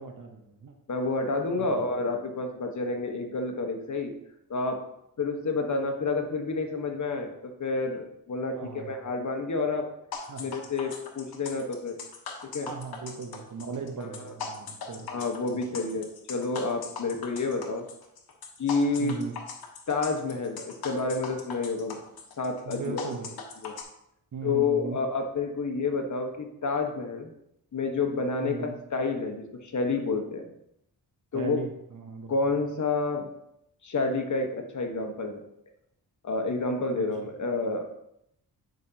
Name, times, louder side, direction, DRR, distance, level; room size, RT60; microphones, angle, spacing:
voice 1, 0.0-0.7 1.6-1.8 8.5-8.9 10.3-10.6 12.6-15.1 15.7-15.8 19.0-19.4 22.6-23.3 24.3-25.0 28.4-28.8 31.3-32.3 36.9-37.1, right 4 dB, 55° right, 4 dB, 1.0 m, -37 dB
voice 2, 0.9-4.1 4.5-4.8 5.2-9.9 10.4-12.0 12.4-12.7 14.0-14.3 15.1-17.9 18.6-19.2 19.9-22.0 22.4-23.1 23.6-23.7 24.4-27.3 27.7-30.5 31.3-31.6 32.3-33.3 33.8-35.4 36.2-37.9, left 3 dB, 50° left, 4 dB, 1.3 m, -29 dB
sound 1, 10.1-23.8, left 5 dB, 75° left, 1.2 m, -40 dB
9.4 x 5.2 x 2.9 m, 0.78 s
cardioid pair, 65°, 37 cm